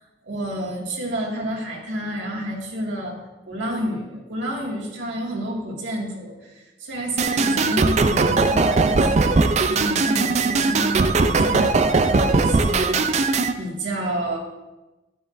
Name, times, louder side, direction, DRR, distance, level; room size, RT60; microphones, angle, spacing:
voice 1, 0.2-3.2 3.5-14.4, right 1 dB, 85° right, -2 dB, 2.0 m, -30 dB
sound 1, 7.2-13.5, right 3 dB, 35° right, 0.4 m, -19 dB
9.9 x 9.7 x 2.6 m, 1.1 s
head